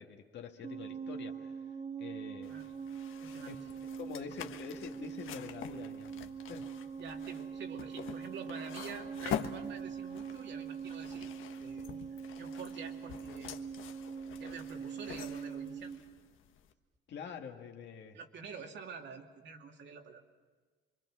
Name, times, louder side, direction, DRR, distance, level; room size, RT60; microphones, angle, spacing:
voice 1, 0.0-1.7 2.0-2.6 3.5-3.6 4.0-6.7 17.1-18.2, left 6 dB, 60° left, 3 dB, 1.8 m, -46 dB
sound 1, 0.6-16.0, right 6 dB, 30° right, 1.9 m, -43 dB
sound 2, 2.4-16.7, left 9 dB, 85° left, 1.4 m, -46 dB
voice 2, 3.2-3.6 4.4-4.5 7.0-11.3 11.6-12.0 12.4-13.5 14.4-15.9 18.1-20.2, right 6 dB, 65° right, 4 dB, 2.6 m, -47 dB
26.5 x 24.5 x 6.2 m, 1.4 s
cardioid pair, 175°, 20 cm